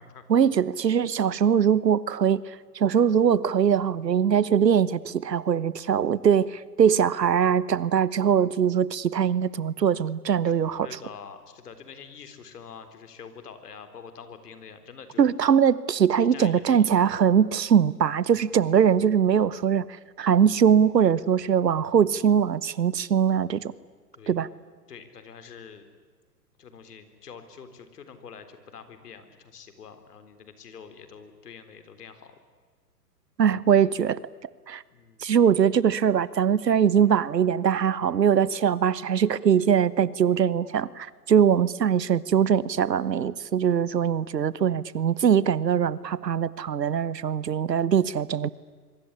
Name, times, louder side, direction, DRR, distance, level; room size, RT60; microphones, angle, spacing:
voice 1, 0.3-2.4 2.7-10.9 15.2-19.9 20.2-23.7 24.3-24.5 33.4-34.2 34.7-34.8 35.2-48.5, right 8 dB, 85° right, 20 dB, 1.2 m, -22 dB
voice 2, 10.8-15.2 16.1-16.9 24.1-24.4 24.9-25.9 26.6-32.4 34.9-35.3, left 6 dB, 70° left, 10 dB, 4.0 m, -46 dB
25.5 x 23.5 x 9.8 m, 1.4 s
hypercardioid pair, 125°, 48 cm